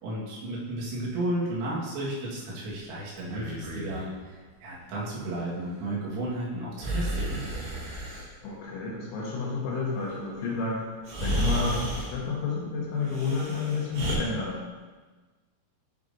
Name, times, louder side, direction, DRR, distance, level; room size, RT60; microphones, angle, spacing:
voice 1, 0.0-7.5, right 1 dB, 90° right, -6 dB, 4.3 m, -33 dB
Breathing, 3.2-4.1 6.8-8.3 10.4-10.5 11.0-12.2 13.0-14.1, equal, 65° right, 3.9 m, -31 dB
voice 2, 8.4-14.8, left 4 dB, 75° left, -4 dB, 3.3 m, -31 dB
12.0 x 5.2 x 2.6 m, 1.3 s
omnidirectional pair, 6.0 m